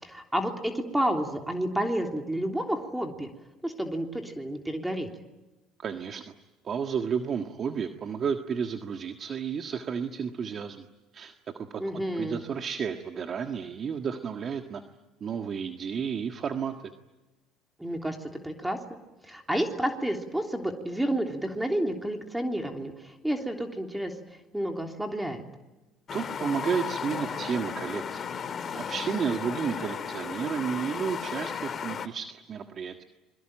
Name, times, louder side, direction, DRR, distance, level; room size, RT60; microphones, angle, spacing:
voice 1, 0.0-3.3 3.6-5.1 11.8-12.4 17.8-18.8 19.2-24.2 24.5-25.4, right 1 dB, 5° right, 3 dB, 3.2 m, -30 dB
voice 2, 5.8-6.3 6.6-10.8 11.1-14.8 15.2-16.9 26.1-28.2 28.7-32.9, right 7 dB, 45° right, 6 dB, 1.7 m, -32 dB
sound 1, 26.1-32.1, left 7 dB, 40° left, 2.1 m, -35 dB
27.0 x 23.0 x 9.0 m, 1.1 s
supercardioid pair, 90°, 0 cm